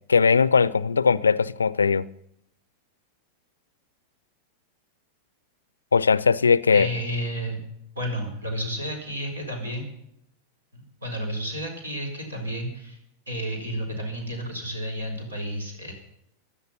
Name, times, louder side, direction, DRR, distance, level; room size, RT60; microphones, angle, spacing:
voice 1, 0.1-2.0 5.9-6.9, left 5 dB, 75° left, 0.5 m, -19 dB
voice 2, 6.7-7.6 8.0-9.8 10.7-13.0 13.3-15.9, equal, 75° right, 4.4 m, -31 dB
16.0 x 11.5 x 5.7 m
figure-of-eight pair, 90°, 0 cm